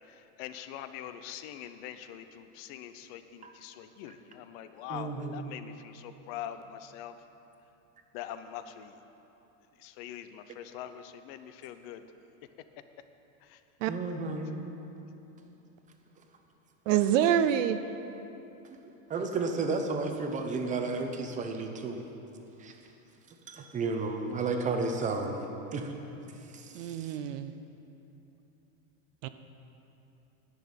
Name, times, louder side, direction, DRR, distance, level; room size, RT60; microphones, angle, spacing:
voice 1, 0.0-7.2 8.1-9.0 9.8-12.1 13.4-13.6 24.1-24.2, left 10 dB, 45° left, 10 dB, 0.7 m, -43 dB
voice 2, 4.9-5.4 13.9-14.6 18.6-22.0 22.6-22.7 23.3-25.4 25.7-25.9 26.5-27.2, right 3 dB, 20° right, 5 dB, 0.8 m, -33 dB
voice 3, 16.9-17.8 26.7-27.5 29.2-29.3, right 10 dB, 65° right, 11 dB, 0.6 m, -26 dB
10.5 x 6.2 x 8.9 m, 3.0 s
supercardioid pair, 150°, 41 cm